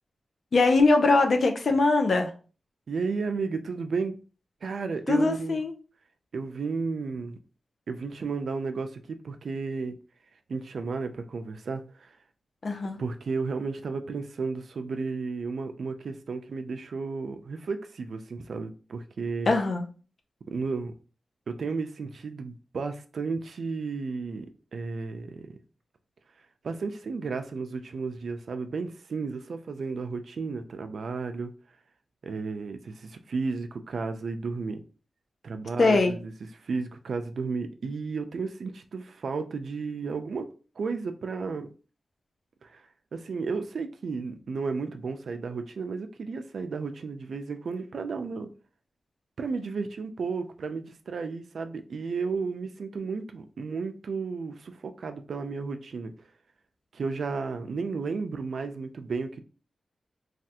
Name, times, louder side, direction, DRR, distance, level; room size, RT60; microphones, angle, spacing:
voice 1, 0.5-2.3 5.1-5.7 12.6-13.0 19.5-19.9 35.8-36.1, left 3 dB, 60° left, 0.5 m, -22 dB
voice 2, 2.9-4.2 4.6-5.6 6.3-7.4 7.9-10.0 10.5-12.2 13.0-19.5 20.5-20.9 21.5-24.5 24.7-25.5 26.6-31.5 32.2-34.8 35.4-36.3 36.6-40.5 40.8-41.7 42.6-42.8 43.1-48.5 49.4-56.1 56.9-59.4, right 4 dB, 75° right, 0.4 m, -33 dB
3.3 x 2.3 x 2.8 m
wide cardioid pair, 90°, 0 cm